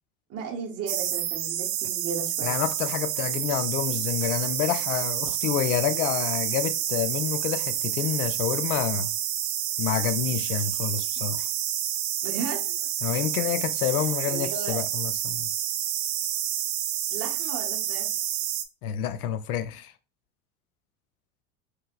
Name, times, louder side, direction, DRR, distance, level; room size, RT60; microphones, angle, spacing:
voice 1, 0.3-2.6 12.2-12.9 14.0-14.8 17.1-18.1, right 5 dB, 35° right, 1.0 m, -35 dB
sound 1, 0.9-18.6, right 11 dB, 65° right, 0.7 m, -29 dB
voice 2, 2.4-9.1 9.8-11.5 13.0-15.5 18.8-19.9, left 10 dB, 80° left, 0.6 m, -28 dB
4.6 x 3.2 x 2.3 m
hypercardioid pair, 85°, 43 cm